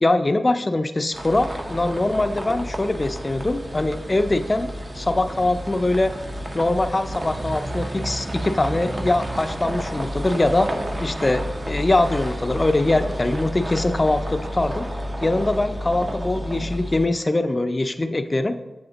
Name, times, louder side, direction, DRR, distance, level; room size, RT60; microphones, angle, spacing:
voice 1, 0.0-6.1 6.5-10.7 11.0-14.9 15.2-18.6, left 2 dB, 30° left, 9 dB, 0.3 m, -22 dB
sound 1, 1.1-17.1, equal, 30° right, 0.7 m, -31 dB
7.8 x 3.5 x 3.9 m, 1.1 s
wide cardioid pair, 80°, 0 cm